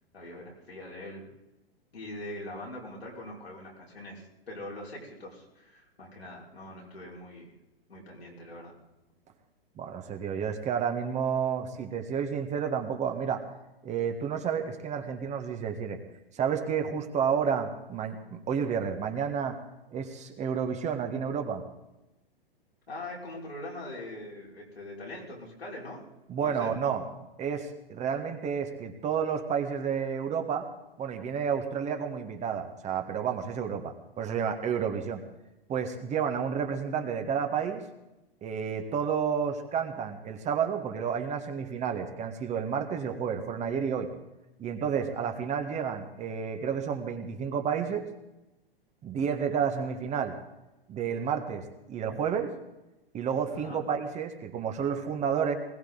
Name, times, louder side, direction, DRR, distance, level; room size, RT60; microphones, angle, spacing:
voice 1, 0.1-1.3 1.9-7.5 7.9-8.7 22.9-26.1 26.4-26.7 53.5-53.8, left 1 dB, 90° left, -4 dB, 5.6 m, -42 dB
voice 2, 9.8-13.4 13.8-16.0 16.3-19.6 19.9-21.6 26.3-27.0 27.4-30.7 31.0-35.2 35.7-37.8 38.4-44.1 44.6-48.1 49.0-50.4 50.9-52.5 53.1-55.6, right 7 dB, 25° right, 6 dB, 1.6 m, -30 dB
20.5 x 17.5 x 4.0 m, 0.96 s
hypercardioid pair, 110°, 30 cm